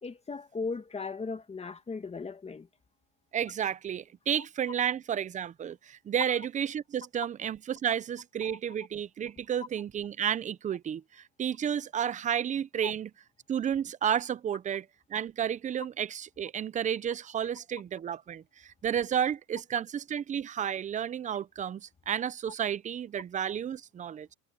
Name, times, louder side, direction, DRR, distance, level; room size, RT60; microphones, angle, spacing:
voice 1, 0.0-2.7 8.4-8.6 12.8-12.9, left 4 dB, 15° left, 2.1 m, -37 dB
voice 2, 3.3-13.1 13.5-24.3, right 9 dB, 20° right, 0.6 m, -32 dB
supercardioid pair, 125°, 39 cm